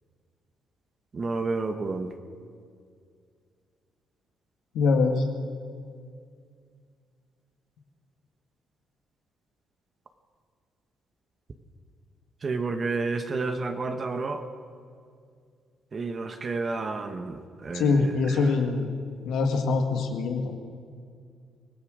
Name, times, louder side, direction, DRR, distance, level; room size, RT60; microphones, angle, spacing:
voice 1, 1.1-2.1 12.4-14.4 15.9-18.1, right 3 dB, 40° right, 7 dB, 1.5 m, -30 dB
voice 2, 4.7-5.2 17.7-19.0 19.2-20.6, left 4 dB, 85° left, 3 dB, 2.0 m, -24 dB
24.5 x 17.0 x 6.5 m, 2.2 s
cardioid pair, 90°, 0 cm